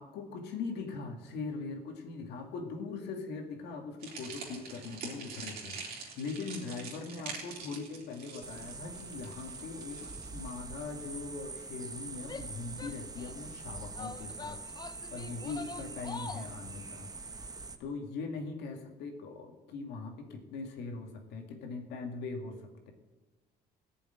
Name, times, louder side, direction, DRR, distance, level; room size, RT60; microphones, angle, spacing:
voice 1, 0.0-14.6 15.1-17.1 17.8-22.9, left 4 dB, 85° left, 4 dB, 2.2 m, -41 dB
sound 1, 4.0-11.3, right 5 dB, 65° right, 3.4 m, -45 dB
sound 2, 8.4-17.8, right 4 dB, 20° right, 1.0 m, -44 dB
Female speech woman speaking / Yell, 12.2-13.5 13.9-16.6, left 5 dB, 25° left, 0.5 m, -45 dB
14.5 x 7.0 x 9.2 m, 1.2 s
cardioid pair, 110°, 17 cm